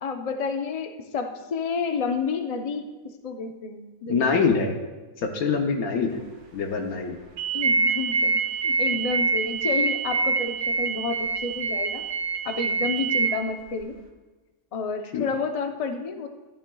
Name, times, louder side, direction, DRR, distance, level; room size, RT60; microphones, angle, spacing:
voice 1, 0.0-4.5 7.5-8.4 8.6-12.0 12.4-14.0 14.7-16.3, left 4 dB, 35° left, 5 dB, 0.6 m, -30 dB
voice 2, 4.1-4.8 5.2-6.2 6.5-7.2 15.1-15.2, left 5 dB, 75° left, 3 dB, 1.3 m, -24 dB
sound 1, 7.4-13.3, right 4 dB, 85° right, 1.7 m, -25 dB
14.0 x 10.5 x 2.3 m, 1.2 s
omnidirectional pair, 1.6 m